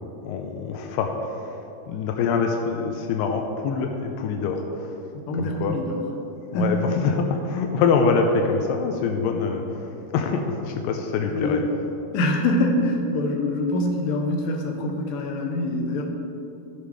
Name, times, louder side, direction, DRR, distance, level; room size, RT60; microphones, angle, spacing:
voice 1, 0.2-1.4 1.9-4.9 5.4-5.8 6.5-11.6, left 5 dB, 85° left, 3 dB, 2.7 m, -25 dB
voice 2, 5.1-6.0 6.5-7.0 11.3-11.6 12.1-16.0, left 1 dB, 70° left, 2 dB, 2.6 m, -25 dB
15.0 x 6.8 x 4.7 m, 2.8 s
omnidirectional pair, 4.6 m